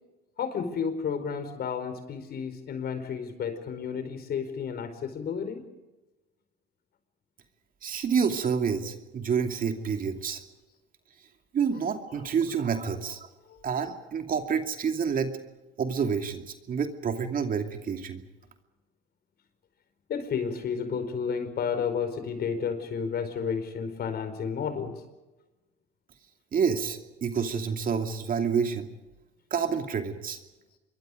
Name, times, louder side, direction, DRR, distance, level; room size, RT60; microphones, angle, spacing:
voice 1, 0.4-5.6 13.5-13.6 20.1-24.9, left 6 dB, 50° left, 10 dB, 4.9 m, -31 dB
voice 2, 7.8-10.4 11.5-13.2 13.6-15.3 15.8-18.2 26.5-28.9 29.5-30.4, right 6 dB, 40° right, 6 dB, 2.6 m, -28 dB
26.5 x 23.0 x 5.2 m, 1.1 s
supercardioid pair, 90°, 21 cm